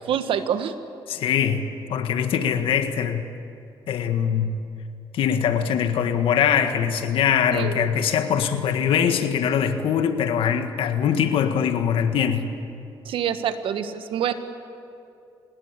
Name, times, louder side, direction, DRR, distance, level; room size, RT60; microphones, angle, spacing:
voice 1, 0.1-0.7 7.5-7.9 13.0-14.3, right 9 dB, 80° right, 9 dB, 1.5 m, -26 dB
voice 2, 1.1-1.6 1.9-3.3 3.9-4.6 5.1-12.5, left 8 dB, 90° left, 8 dB, 1.7 m, -22 dB
27.0 x 20.5 x 8.3 m, 2.6 s
cardioid pair, 100°, 9 cm